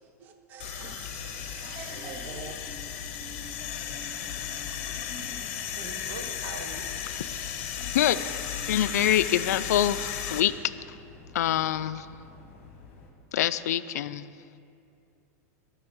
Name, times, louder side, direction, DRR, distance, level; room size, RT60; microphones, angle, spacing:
voice 1, 0.0-2.6, right 6 dB, 20° right, 6 dB, 0.5 m, -44 dB
sound 1, 0.6-10.4, left 9 dB, 40° left, 0.9 m, -35 dB
sound 2, 0.9-13.1, left 3 dB, 25° left, 1.4 m, -51 dB
voice 2, 3.0-6.9, right 4 dB, 75° right, 4 dB, 1.5 m, -46 dB
voice 3, 7.9-8.4 8.7-10.5 11.3-12.1 13.3-14.3, left 11 dB, 80° left, 13 dB, 0.4 m, -25 dB
19.0 x 6.3 x 4.5 m, 2.5 s
supercardioid pair, 180°, 9 cm